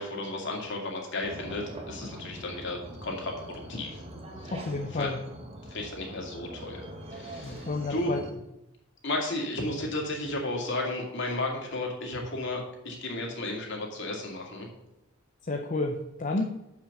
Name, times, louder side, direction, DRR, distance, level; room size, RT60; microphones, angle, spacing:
voice 1, 0.0-4.0 4.4-4.5 4.9-5.1 5.7-6.8 7.1-8.1 9.0-12.6 12.8-14.7, left 2 dB, 55° left, 0 dB, 2.3 m, -33 dB
sound 1, 1.2-8.3, right 1 dB, 25° right, 1.3 m, -43 dB
voice 2, 4.5-5.2 7.4-8.2 15.4-16.6, left 2 dB, 35° left, 3 dB, 0.6 m, -31 dB
7.2 x 6.0 x 7.2 m, 0.91 s
head